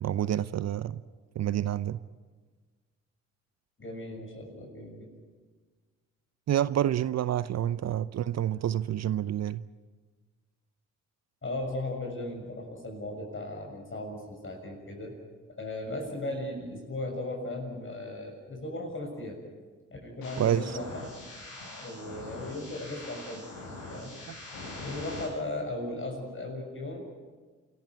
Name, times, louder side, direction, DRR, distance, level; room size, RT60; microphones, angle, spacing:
voice 1, 0.0-1.0 1.4-2.0 6.5-9.6 20.4-20.8, right 11 dB, 45° right, 0.7 m, -28 dB
voice 2, 3.8-5.1 7.6-7.7 11.4-15.1 15.6-19.4 19.9-21.0 21.8-23.5 23.9-24.1 24.8-27.1, left 2 dB, 35° left, 6.8 m, -37 dB
sound 1, 20.2-25.2, left 2 dB, 75° left, 6.8 m, -43 dB
27.0 x 14.0 x 9.6 m
hypercardioid pair, 45°, 36 cm